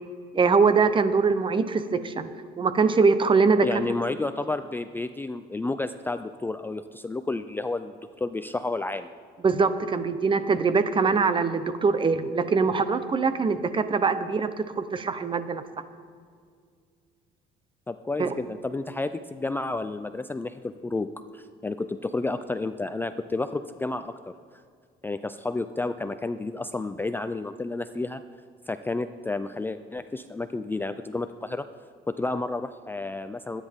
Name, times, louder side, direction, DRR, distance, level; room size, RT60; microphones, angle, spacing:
voice 1, 0.3-2.3 2.6-3.7 9.4-15.6 18.2-18.3, right 4 dB, 30° right, 11 dB, 0.8 m, -23 dB
voice 2, 3.6-9.1 17.9-24.3 25.0-28.2 28.7-31.7 32.1-33.6, left 2 dB, 10° left, 10 dB, 0.4 m, -31 dB
23.0 x 10.0 x 3.6 m, 2.1 s
cardioid pair, 110°, 17 cm